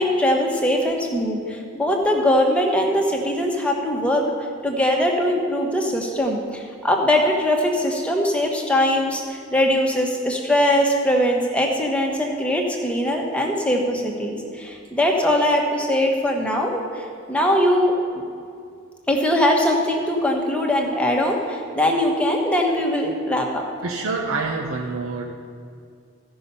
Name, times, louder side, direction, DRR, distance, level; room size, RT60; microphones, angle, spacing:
voice 1, 0.0-4.3 4.6-18.0 19.1-23.6, left 1 dB, 5° left, 0 dB, 1.0 m, -21 dB
voice 2, 23.8-25.2, right 3 dB, 85° right, -1 dB, 0.9 m, -26 dB
15.0 x 5.6 x 5.5 m, 2.3 s
head